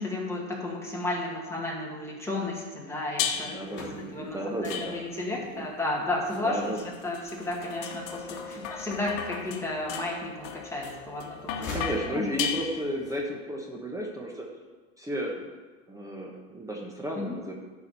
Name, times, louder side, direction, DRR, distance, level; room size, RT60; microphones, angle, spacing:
voice 1, 0.0-6.8 7.0-11.7 12.1-12.3 17.2-17.4, left 2 dB, 5° left, -3 dB, 2.1 m, -33 dB
sound 1, 3.2-3.7 4.7-5.4 6.3-13.2, left 8 dB, 65° left, 1.3 m, -36 dB
voice 2, 3.3-5.0 5.3-5.7 6.3-6.8 8.5-8.7 11.6-14.4 15.0-15.4 15.9-17.5, right 1 dB, 10° right, -1 dB, 1.3 m, -34 dB
sound 2, 3.6-9.4 9.9-10.8 11.1-12.7, left 3 dB, 30° left, 3.1 m, -44 dB
10.5 x 4.8 x 7.0 m, 1.3 s
supercardioid pair, 130°, 39 cm